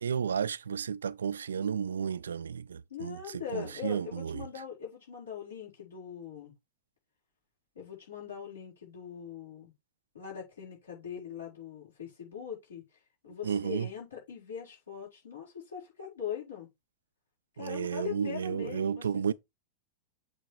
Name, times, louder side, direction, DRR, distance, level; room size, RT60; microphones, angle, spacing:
voice 1, 0.0-4.5 13.4-13.9 17.6-19.3, right 7 dB, 70° right, 0.3 m, -32 dB
voice 2, 2.9-6.5 7.7-9.7 10.1-12.8 13.2-16.7 17.6-19.3, left 8 dB, 70° left, 4.9 m, -41 dB
8.0 x 3.8 x 4.5 m
figure-of-eight pair, 90°, 0 cm